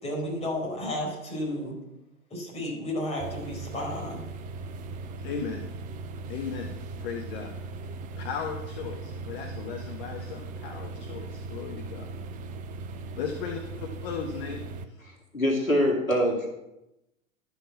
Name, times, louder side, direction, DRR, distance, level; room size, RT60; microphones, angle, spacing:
voice 1, 0.0-1.8 2.3-4.2, left 1 dB, 15° left, -3 dB, 4.7 m, -32 dB
sound 1, 3.2-14.8, right 3 dB, 20° right, 0.6 m, -39 dB
voice 2, 5.2-5.6 6.3-6.7 7.0-7.5 8.2-12.1 13.2-15.0, left 6 dB, 45° left, 4 dB, 1.1 m, -36 dB
voice 3, 15.3-16.5, equal, 90° left, -1 dB, 2.3 m, -23 dB
12.0 x 5.8 x 5.8 m, 0.92 s
figure-of-eight pair, 95°, 40 cm